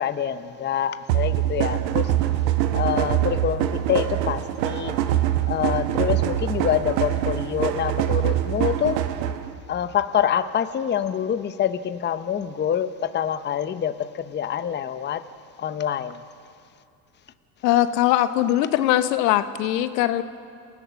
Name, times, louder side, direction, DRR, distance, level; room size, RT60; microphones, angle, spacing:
voice 1, 0.0-2.1 2.7-5.0 5.5-9.0 9.7-15.2 15.6-16.2, left 9 dB, 20° left, 11 dB, 0.8 m, -26 dB
sound 1, 1.1-9.5, right 12 dB, 80° right, 1.3 m, -24 dB
voice 2, 17.6-20.2, left 13 dB, 80° left, 11 dB, 1.2 m, -21 dB
27.5 x 16.0 x 6.2 m, 2.3 s
supercardioid pair, 100°, 49 cm